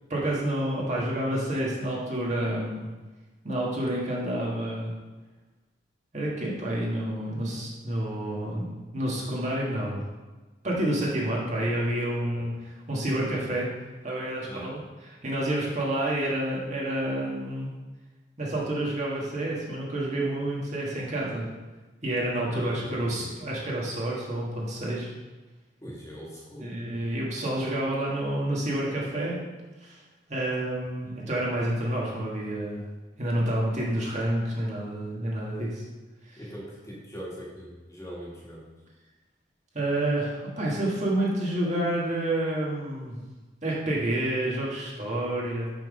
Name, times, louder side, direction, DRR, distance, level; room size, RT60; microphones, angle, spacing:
voice 1, 0.1-2.9 3.4-4.9 6.1-8.6 8.9-10.0 10.6-13.7 14.0-14.8 15.0-17.7 18.4-21.5 22.0-25.1 26.6-29.4 29.8-29.9 30.3-32.8 33.2-35.8 39.7-43.2 43.6-45.7, right 1 dB, 40° right, -4 dB, 1.7 m, -29 dB
voice 2, 22.5-23.3 25.8-26.7 31.2-31.3 36.4-38.7, equal, 20° left, -5 dB, 1.7 m, -41 dB
6.0 x 5.7 x 4.9 m, 1.2 s
head